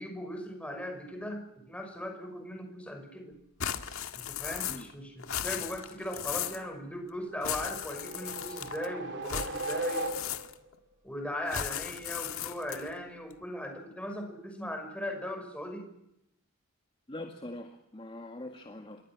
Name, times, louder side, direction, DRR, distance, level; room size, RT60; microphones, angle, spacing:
voice 1, 0.0-3.3 4.1-10.1 11.0-15.9, left 1 dB, 5° left, 4 dB, 5.8 m, -38 dB
sound 1, 3.6-4.9 5.2-6.7 7.4-8.9 9.2-10.7 11.5-12.9, left 9 dB, 70° left, 1.8 m, -37 dB
sound 2, 7.4-10.7, right 1 dB, 55° right, 4.4 m, -37 dB
voice 2, 17.1-19.0, left 1 dB, 25° left, 4 dB, 2.0 m, -43 dB
28.0 x 23.5 x 6.1 m, 0.81 s
head